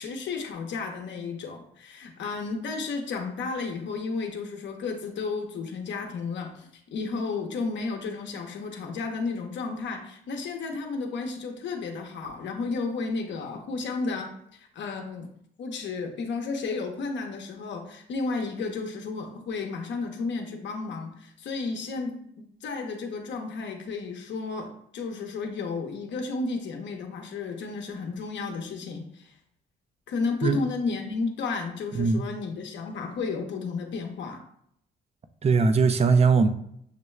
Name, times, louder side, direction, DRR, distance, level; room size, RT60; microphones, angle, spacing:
voice 1, 0.0-15.3 15.6-29.3 30.1-34.4, left 4 dB, 65° left, 0.8 m, -33 dB
voice 2, 31.9-32.3 35.4-36.5, right 4 dB, 30° right, 0.5 m, -20 dB
6.5 x 2.2 x 3.2 m
cardioid pair, 90°, 20 cm